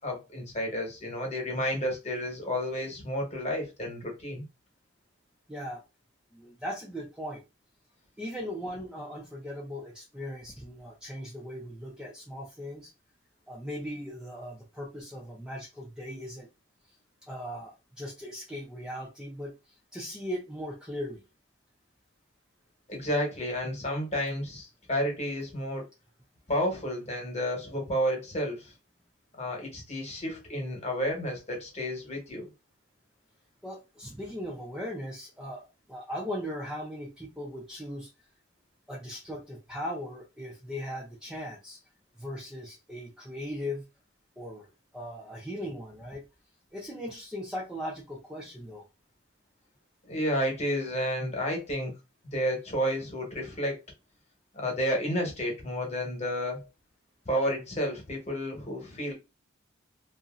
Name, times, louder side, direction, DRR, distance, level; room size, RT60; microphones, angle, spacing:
voice 1, 0.0-4.4 22.9-25.8 26.5-28.7 29.4-32.5 50.0-51.9 52.2-53.8 54.5-56.6 57.2-59.1, equal, 35° left, 1.1 m, -31 dB
voice 2, 5.5-5.8 6.3-7.4 8.2-12.9 13.5-16.5 17.2-19.5 19.9-21.2 33.6-38.1 38.9-41.8 42.2-43.8 44.4-46.2 46.7-48.9, equal, 5° right, 0.5 m, -38 dB
2.8 x 2.6 x 2.4 m
head